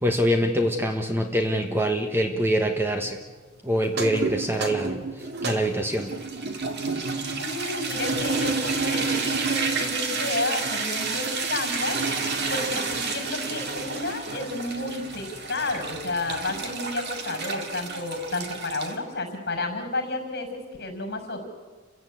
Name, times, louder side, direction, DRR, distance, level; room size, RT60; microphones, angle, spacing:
voice 1, 0.0-3.2 3.6-6.1, equal, 10° right, 5 dB, 1.2 m, -25 dB
sound 1, 3.8-19.0, right 4 dB, 55° right, 2.2 m, -30 dB
voice 2, 7.3-12.0 12.5-21.5, left 2 dB, 50° left, 4 dB, 6.0 m, -31 dB
29.5 x 16.0 x 8.5 m, 1.4 s
head